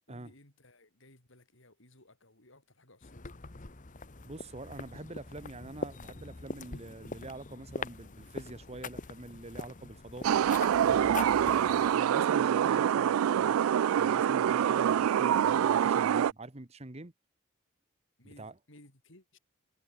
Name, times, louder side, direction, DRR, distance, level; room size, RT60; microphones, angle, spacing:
voice 1, 0.1-3.8 18.2-19.4, left 1 dB, 65° left, 6.4 m, -59 dB
sound 1, 3.0-12.0, left 3 dB, 40° left, 1.2 m, -43 dB
voice 2, 4.2-10.3 10.8-17.1 18.2-18.5, right 2 dB, 30° right, 1.4 m, -45 dB
sound 2, 10.2-16.3, right 9 dB, 85° right, 0.3 m, -26 dB
head